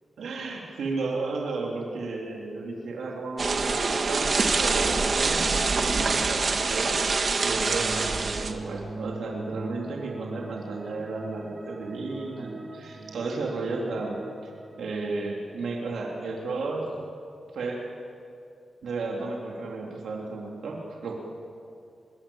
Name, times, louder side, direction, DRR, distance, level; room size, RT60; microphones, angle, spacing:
voice 1, 0.2-5.4 5.7-7.0 7.4-14.5 14.8-16.9 17.5-17.8 18.8-21.2, right 3 dB, 85° right, -1 dB, 3.6 m, -33 dB
sound 1, 3.4-8.5, right 4 dB, 50° right, 1.8 m, -25 dB
sound 2, 7.6-16.2 16.5-16.6 16.8-17.1, right 3 dB, 30° right, 1.6 m, -41 dB
25.5 x 21.5 x 7.3 m, 2.5 s
cardioid pair, 95°, 0 cm